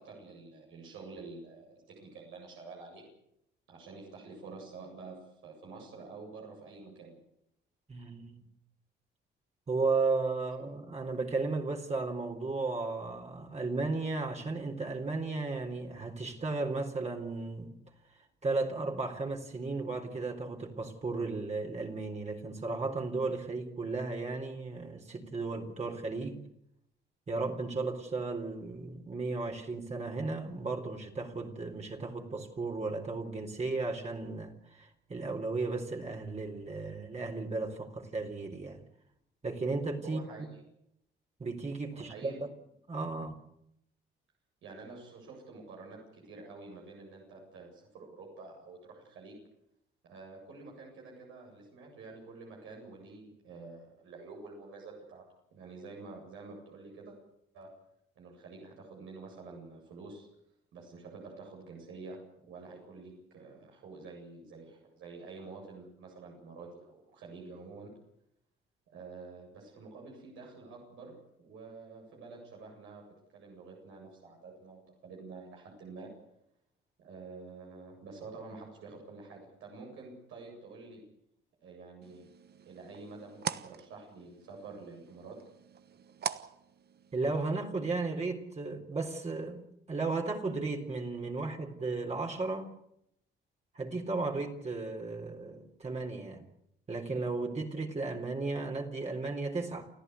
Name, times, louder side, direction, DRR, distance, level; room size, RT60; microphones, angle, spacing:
voice 1, 0.0-3.1 3.7-7.2 40.0-40.6 41.9-42.5 44.6-49.4 50.0-55.2 55.5-57.1 57.5-57.7 58.2-60.3 60.7-67.9 68.9-73.0 73.3-76.1 77.0-81.0 81.6-82.3 82.7-85.4, right 3 dB, 85° right, 7.9 m, -48 dB
voice 2, 7.9-8.4 9.7-17.7 18.4-26.4 27.3-38.8 39.4-40.2 41.4-42.3 42.9-43.4 87.1-92.7 93.7-96.4 96.9-99.9, right 3 dB, 35° right, 3.9 m, -35 dB
sound 1, 82.0-87.4, right 8 dB, 55° right, 1.2 m, -43 dB
29.5 x 14.0 x 8.4 m
cardioid pair, 90°, 20 cm